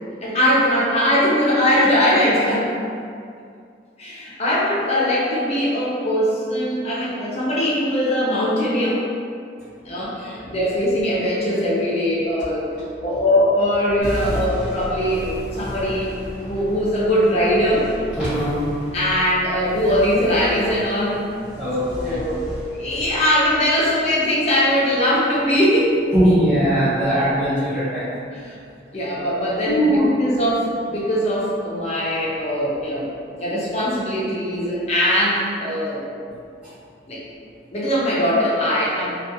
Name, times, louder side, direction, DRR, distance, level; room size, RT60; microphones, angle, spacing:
voice 1, 0.2-2.7 4.0-9.0 9.8-12.7 13.0-16.1 16.4-17.9 18.9-21.2 21.9-22.5 22.8-26.0 28.4-28.6 28.9-33.1 33.4-36.0 37.1-37.2 37.7-39.1, equal, 35° left, -6 dB, 0.5 m, -21 dB
sound 1, 14.0-24.9, equal, 35° right, 0.8 m, -34 dB
voice 2, 18.1-18.6 21.6-22.2 26.1-28.0 29.6-30.1, equal, 5° right, -18 dB, 0.7 m, -20 dB
2.4 x 2.3 x 2.6 m, 2.3 s
head